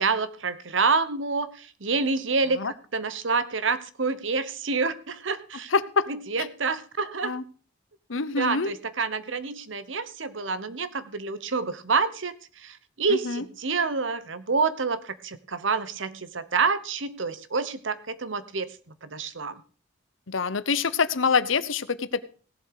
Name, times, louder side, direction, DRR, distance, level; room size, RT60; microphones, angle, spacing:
voice 1, 0.0-5.7 6.1-7.4 8.4-18.8 19.0-19.6, right 4 dB, 75° right, 14 dB, 1.1 m, -28 dB
voice 2, 5.7-6.1 6.4-6.5 7.2-7.4 8.1-8.7 13.1-13.4 20.3-22.2, left 5 dB, 80° left, 15 dB, 0.9 m, -25 dB
17.0 x 7.6 x 4.8 m, 0.40 s
head